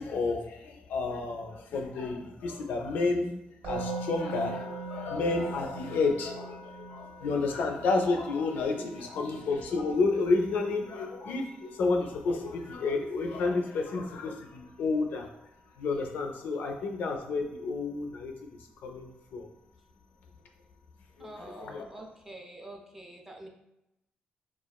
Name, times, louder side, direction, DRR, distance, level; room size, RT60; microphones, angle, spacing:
voice 1, 0.0-3.3 3.6-15.3 15.8-18.3 18.8-19.5 21.2-21.9, left 3 dB, 75° left, 3 dB, 0.4 m, -30 dB
Musical instrument, 3.6-14.7, right 3 dB, 55° right, 0.8 m, -43 dB
voice 2, 8.8-9.2 21.2-23.5, right 1 dB, 10° right, 1 dB, 0.3 m, -46 dB
3.0 x 2.3 x 2.2 m, 0.88 s
cardioid pair, 160°, 3 cm